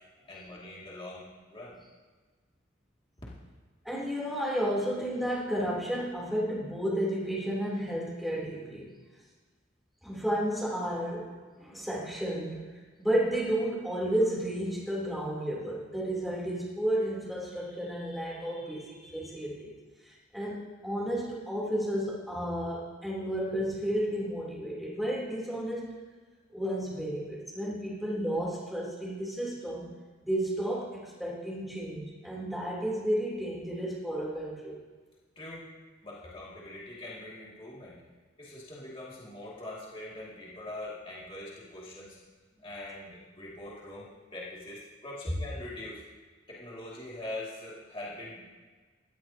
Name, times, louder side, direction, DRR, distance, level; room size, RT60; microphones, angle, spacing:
voice 1, 0.3-1.8 35.4-35.7 36.0-38.0 38.4-42.2 42.6-46.0 46.5-48.5, left 1 dB, 25° left, -6 dB, 2.4 m, -43 dB
voice 2, 3.8-8.9 10.0-12.7 13.0-19.8 20.0-26.0 26.5-29.9 30.2-34.8, equal, ahead, -6 dB, 3.3 m, -32 dB
17.0 x 13.0 x 2.9 m, 1.4 s
head